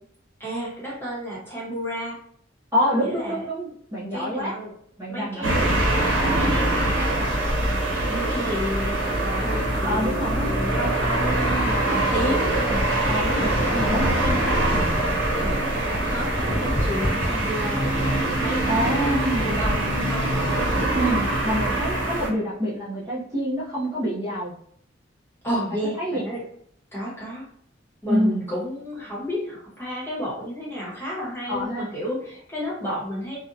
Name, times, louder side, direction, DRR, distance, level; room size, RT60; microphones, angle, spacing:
voice 1, 0.4-2.2 2.8-3.4 4.1-4.7 5.1-5.7 6.2-10.9 11.2-11.4 11.9-12.8 13.3-14.7 15.4-20.4 25.4-26.4 26.9-27.5 28.0-33.4, equal, 10° left, -6 dB, 1.0 m, -32 dB
voice 2, 2.7-4.6 5.0-6.0 9.8-12.5 13.1-14.8 18.7-19.5 20.9-24.6 25.7-26.2 28.1-28.4 31.5-31.9, equal, 15° right, -9 dB, 0.6 m, -27 dB
sound 1, 5.4-22.3, right 1 dB, 85° right, 0.7 m, -24 dB
sound 2, 13.5-20.9, equal, 40° right, 1.2 m, -31 dB
2.5 x 2.1 x 2.6 m, 0.65 s
head